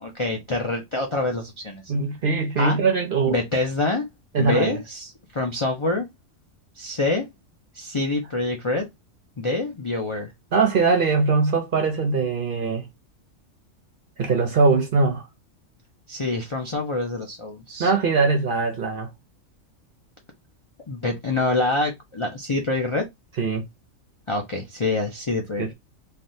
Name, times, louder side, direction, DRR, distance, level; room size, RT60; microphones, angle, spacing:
voice 1, 0.0-1.8 2.6-2.8 3.3-4.1 4.4-6.1 6.8-7.3 7.7-8.9 9.4-10.3 16.1-17.9 20.9-23.1 24.3-25.7, left 2 dB, 50° left, 0.3 m, -26 dB
voice 2, 1.9-3.4 4.3-4.8 10.5-12.9 14.2-15.3 17.8-19.1 23.4-23.7 25.6-25.7, right 4 dB, 55° right, 0.6 m, -21 dB
3.3 x 2.3 x 2.6 m
omnidirectional pair, 1.4 m